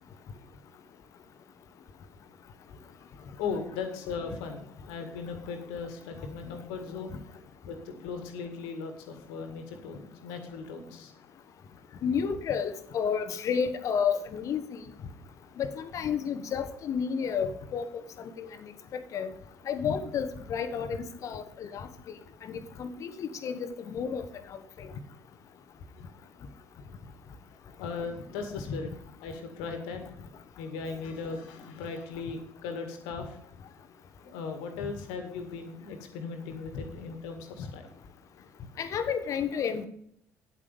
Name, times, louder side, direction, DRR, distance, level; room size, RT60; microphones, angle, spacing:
voice 1, 3.4-7.2 7.7-11.1 27.8-28.9 29.2-30.0 30.6-33.4 34.2-37.9, left 5 dB, 65° left, 7 dB, 2.0 m, -38 dB
voice 2, 12.0-14.6 15.6-17.8 18.4-18.5 18.9-19.3 19.7-21.9 22.8-23.6 23.9-24.2 38.8-39.9, left 7 dB, 50° left, 9 dB, 1.2 m, -30 dB
10.0 x 8.5 x 5.3 m, 0.71 s
figure-of-eight pair, 50°, 7 cm